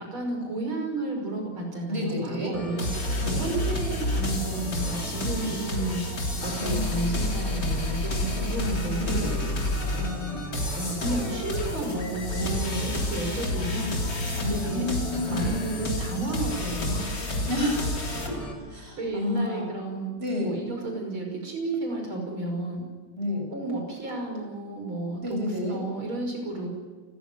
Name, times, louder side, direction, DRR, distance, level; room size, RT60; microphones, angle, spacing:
voice 1, 0.1-2.9 3.2-6.0 6.4-9.2 9.9-10.4 10.8-13.9 14.5-14.8 15.3-17.2 19.0-20.1 20.4-22.8 23.5-25.4 25.7-26.7, right 2 dB, 90° right, 2 dB, 6.4 m, -32 dB
voice 2, 1.9-2.5 3.2-3.5 6.6-6.8 9.0-9.5 14.4-15.5 17.5-18.4 18.7-19.6 20.2-20.5 23.2-23.5 25.2-25.8, left 1 dB, 30° right, 1 dB, 6.6 m, -30 dB
sound 1, 2.5-18.5, equal, 15° left, 5.8 m, -38 dB
sound 2, 2.8-18.3, left 2 dB, 55° left, 4.0 m, -30 dB
29.0 x 14.5 x 9.5 m, 1.4 s
omnidirectional pair, 2.2 m